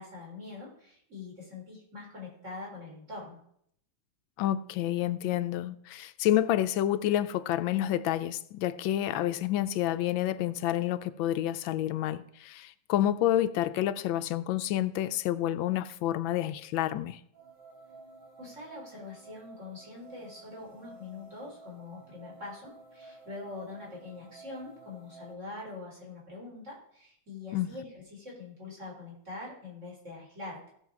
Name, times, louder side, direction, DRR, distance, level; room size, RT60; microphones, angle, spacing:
voice 1, 0.0-3.4 18.4-30.7, left 3 dB, 40° right, 4.0 m, -44 dB
voice 2, 4.4-17.2 27.5-27.7, left 12 dB, 90° left, 1.4 m, -29 dB
sound 1, 17.3-25.3, right 3 dB, 70° right, 5.7 m, -52 dB
15.5 x 6.2 x 4.7 m
omnidirectional pair, 2.1 m